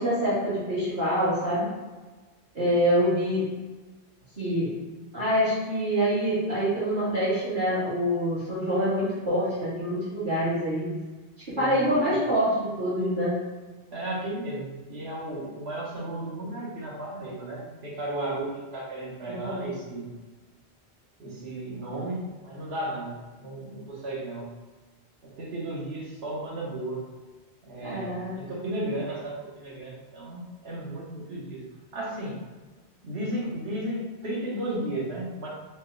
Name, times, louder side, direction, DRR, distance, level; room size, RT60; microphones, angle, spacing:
voice 1, 0.0-1.7 2.5-3.5 4.4-4.7 5.1-10.9 11.6-13.4 19.3-19.7 27.8-28.4, equal, 45° right, -13 dB, 1.8 m, -26 dB
voice 2, 11.6-12.1 13.9-20.1 21.2-24.5 25.2-27.0 27.6-31.7 31.9-32.4 33.0-35.5, right 1 dB, 70° right, -4 dB, 1.3 m, -34 dB
4.4 x 2.2 x 3.8 m, 1.3 s
omnidirectional pair, 1.1 m